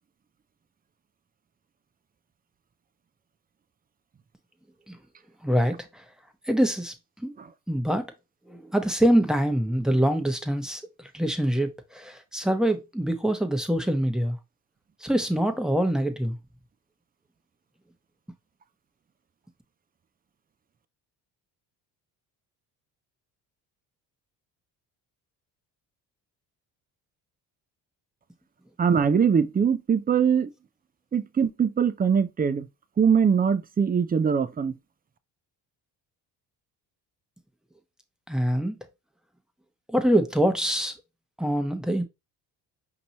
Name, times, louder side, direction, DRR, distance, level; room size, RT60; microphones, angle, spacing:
voice 1, 5.4-6.0 6.5-7.3 7.7-8.0 8.5-14.4 15.0-16.3 38.3-38.7 39.9-40.9 41.4-42.0, equal, ahead, 1.0 m, -25 dB
voice 2, 28.8-30.5 31.1-32.7 33.0-34.7, right 7 dB, 20° right, 0.5 m, -22 dB
5.2 x 2.9 x 2.9 m
hypercardioid pair, 60°, 48 cm